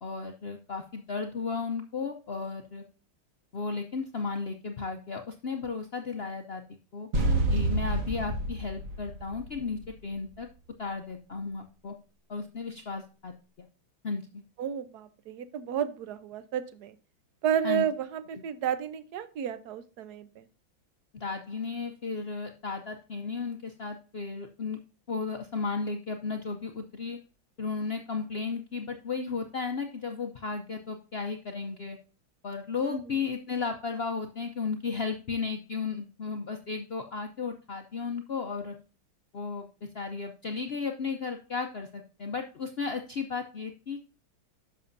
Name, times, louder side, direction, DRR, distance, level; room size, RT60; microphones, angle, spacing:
voice 1, 0.0-2.8 3.5-7.1 7.5-10.5 10.8-11.9 12.3-13.7 14.0-14.4 17.6-17.9 21.1-24.8 25.1-27.2 27.6-32.0 32.4-38.8 39.3-44.0, left 4 dB, 80° left, 5 dB, 0.5 m, -34 dB
sound 1, 7.1-10.1, right 1 dB, 45° right, 1.6 m, -28 dB
voice 2, 7.2-7.7 14.6-16.9 17.4-20.4 32.8-33.0, right 9 dB, 65° right, 13 dB, 1.2 m, -32 dB
11.0 x 6.8 x 2.6 m, 0.34 s
omnidirectional pair, 2.2 m